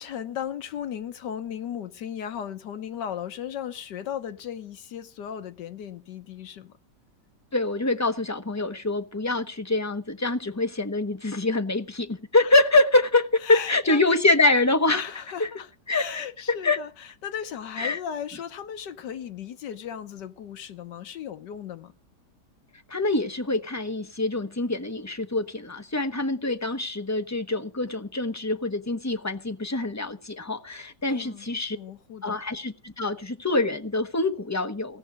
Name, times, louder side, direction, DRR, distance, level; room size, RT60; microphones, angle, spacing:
voice 1, 0.0-6.7 13.4-14.2 14.9-21.9 31.1-32.4, left 9 dB, 75° left, 1.7 m, -36 dB
voice 2, 7.5-15.0 15.4-15.5 15.9-16.8 17.8-18.0 22.9-31.8 32.2-35.0, left 2 dB, 15° left, 0.7 m, -25 dB
17.5 x 6.2 x 7.9 m
omnidirectional pair, 1.9 m